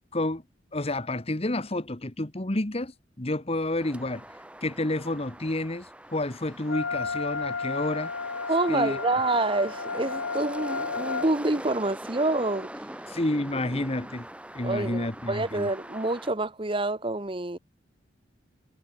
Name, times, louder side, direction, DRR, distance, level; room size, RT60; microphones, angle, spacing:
voice 1, 0.1-0.4 0.7-4.2 4.6-8.1 8.7-9.0 13.1-14.3 14.5-15.7, left 1 dB, 30° left, 1.4 m, -30 dB
sound 1, 3.8-16.3, right 1 dB, 5° right, 7.6 m, -43 dB
Wind instrument woodwind instrument, 6.7-11.3, left 4 dB, 85° left, 1.5 m, -32 dB
voice 2, 8.5-12.7 14.6-17.6, right 2 dB, 30° right, 1.3 m, -27 dB
head